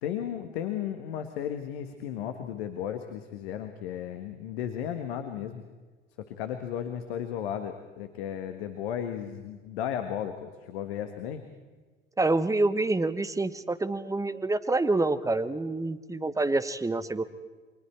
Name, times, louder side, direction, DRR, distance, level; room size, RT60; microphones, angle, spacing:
voice 1, 0.0-5.6 6.3-11.4, left 9 dB, 60° left, 7 dB, 1.6 m, -34 dB
voice 2, 12.2-17.2, right 2 dB, 10° right, 12 dB, 1.1 m, -27 dB
29.5 x 24.0 x 4.5 m, 1.4 s
figure-of-eight pair, 70°, 35 cm